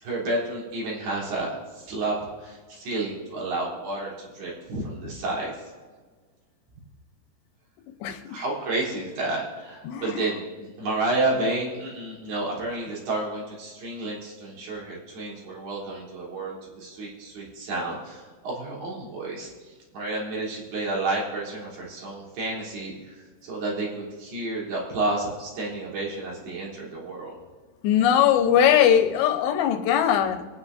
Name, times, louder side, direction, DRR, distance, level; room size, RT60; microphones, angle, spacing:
voice 1, 0.0-1.5 1.8-5.5 8.3-19.5 19.9-22.9 23.4-27.3, right 2 dB, 65° right, -5 dB, 5.2 m, -30 dB
voice 2, 8.0-8.4 9.8-10.4 27.8-30.5, left 9 dB, 80° left, 6 dB, 3.1 m, -21 dB
27.5 x 9.7 x 2.6 m, 1.4 s
omnidirectional pair, 5.0 m